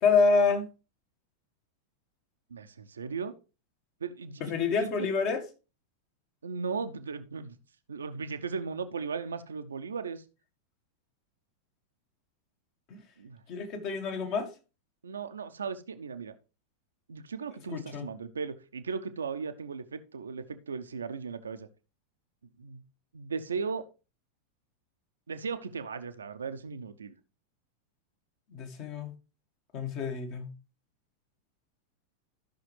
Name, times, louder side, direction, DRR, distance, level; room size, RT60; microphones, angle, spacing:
voice 1, 0.0-0.7 4.4-5.4 13.5-14.5 17.7-18.1 28.5-29.1 29.7-30.5, left 4 dB, 40° left, 1.6 m, -27 dB
voice 2, 2.5-3.3 4.0-5.1 6.4-7.6 7.9-10.2 13.2-13.4 15.0-16.3 17.1-21.7 22.6-22.8 23.1-23.8 25.3-27.1, right 5 dB, 70° right, 0.8 m, -37 dB
14.0 x 5.8 x 3.3 m
figure-of-eight pair, 90°, 0 cm